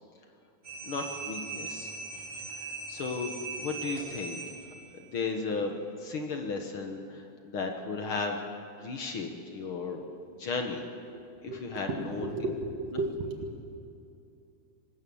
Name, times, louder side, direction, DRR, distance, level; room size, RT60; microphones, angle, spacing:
sound 1, 0.6-4.9, right 3 dB, 30° right, 6.0 m, -40 dB
voice 1, 0.8-1.9 2.6-3.3 3.6-4.4 4.9-8.4 8.8-10.0 10.4-10.8 11.4-12.3, left 4 dB, 60° left, 3 dB, 1.3 m, -35 dB
voice 2, 11.1-13.8, right 2 dB, 50° right, 3 dB, 2.4 m, -35 dB
24.5 x 20.0 x 7.1 m, 2.7 s
omnidirectional pair, 4.4 m